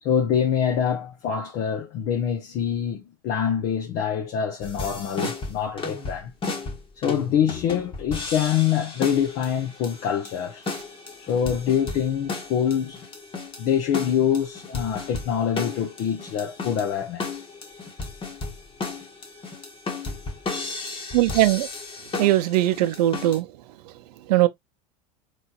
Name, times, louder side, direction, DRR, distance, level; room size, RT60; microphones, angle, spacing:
voice 1, 0.0-6.3 7.0-10.6 11.2-13.0 13.6-17.4, left 8 dB, 50° left, 0.9 m, -25 dB
sound 1, 4.6-23.4, left 3 dB, 25° left, 1.4 m, -34 dB
voice 2, 21.1-21.7 22.2-23.5 24.3-24.5, right 15 dB, 70° right, 0.6 m, -20 dB
4.1 x 3.2 x 2.4 m
hypercardioid pair, 95°, 21 cm